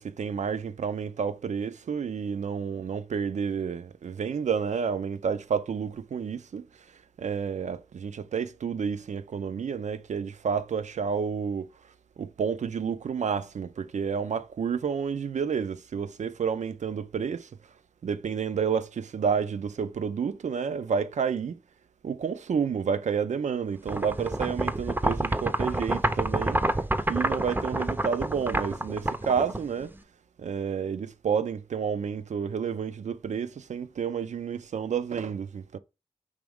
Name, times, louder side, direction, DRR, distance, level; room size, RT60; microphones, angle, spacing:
voice 1, 0.0-6.7 7.2-11.7 12.2-17.5 18.0-21.6 22.0-26.6 27.1-29.9 30.4-35.8, right 6 dB, 70° right, 0.4 m, -30 dB
sound 1, 23.9-30.0, right 1 dB, 15° right, 0.5 m, -28 dB
5.0 x 3.1 x 3.5 m
cardioid pair, 45°, 13 cm